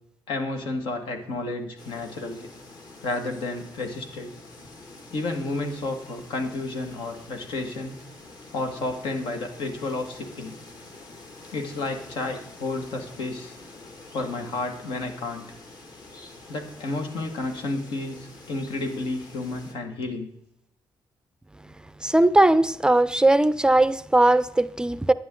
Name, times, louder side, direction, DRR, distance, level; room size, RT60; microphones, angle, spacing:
voice 1, 0.3-2.5 3.0-4.3 5.1-8.0 8.5-10.6 11.5-13.6 14.1-15.5 16.5-20.3, left 2 dB, 85° left, 5 dB, 1.8 m, -31 dB
sound 1, 1.8-19.7, left 2 dB, 50° left, 2.0 m, -46 dB
voice 2, 22.0-25.1, right 2 dB, 10° right, 15 dB, 0.4 m, -19 dB
11.5 x 9.6 x 3.8 m, 0.75 s
cardioid pair, 100°, 8 cm